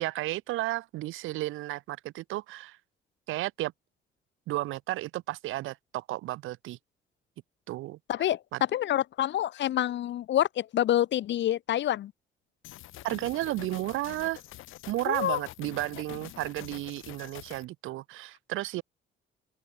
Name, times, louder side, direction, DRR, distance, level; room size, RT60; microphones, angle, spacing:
voice 1, 0.0-2.8 3.3-3.7 4.5-6.8 7.7-8.0 13.0-14.4 14.9-18.8, right 17 dB, 90° right, 1.0 m, -33 dB
voice 2, 8.1-8.4 8.7-12.1 15.1-15.4, left 12 dB, 65° left, 0.7 m, -27 dB
sound 1, 12.6-17.7, left 16 dB, 90° left, 1.4 m, -46 dB
open air
cardioid pair, 90°, 20 cm